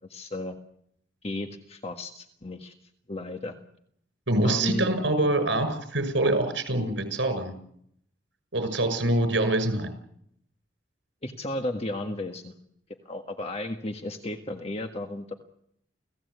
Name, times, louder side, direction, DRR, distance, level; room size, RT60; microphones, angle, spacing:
voice 1, 0.1-0.6 1.2-2.7 3.1-3.6 4.4-4.9 11.2-12.5 12.9-15.3, left 1 dB, 35° left, 5 dB, 1.6 m, -34 dB
voice 2, 4.3-7.5 8.5-9.9, right 1 dB, 80° right, 9 dB, 6.1 m, -25 dB
29.5 x 16.5 x 8.2 m, 0.72 s
head